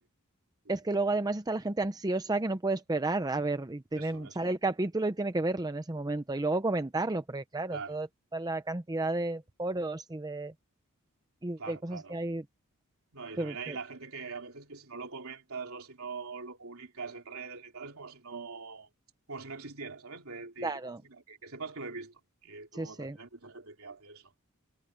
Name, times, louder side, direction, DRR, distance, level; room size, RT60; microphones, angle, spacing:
voice 1, 0.7-8.1 8.3-10.5 11.4-12.4 13.4-13.8 20.6-21.0 22.7-23.2, right 2 dB, 15° right, 0.6 m, -32 dB
voice 2, 4.0-4.4 7.7-8.0 11.6-12.1 13.1-18.9 19.3-24.3, right 4 dB, 65° right, 3.6 m, -43 dB
head